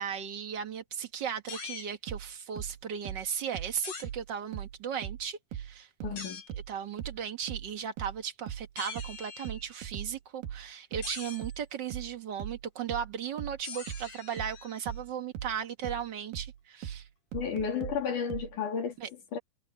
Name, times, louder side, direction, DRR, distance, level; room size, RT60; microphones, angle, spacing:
voice 1, 0.0-5.9 6.7-17.0 19.0-19.1, right 8 dB, 50° right, 1.4 m, -36 dB
sound 1, 1.5-1.9 3.8-4.1 6.2-6.5 8.8-9.7 11.0-11.6 13.6-15.0, left 5 dB, 90° left, 6.7 m, -43 dB
sound 2, 2.1-5.3 5.5-18.6, right 10 dB, 85° right, 3.0 m, -40 dB
voice 2, 6.0-6.4 17.3-19.4, left 6 dB, 65° left, 4.1 m, -33 dB
omnidirectional pair, 4.0 m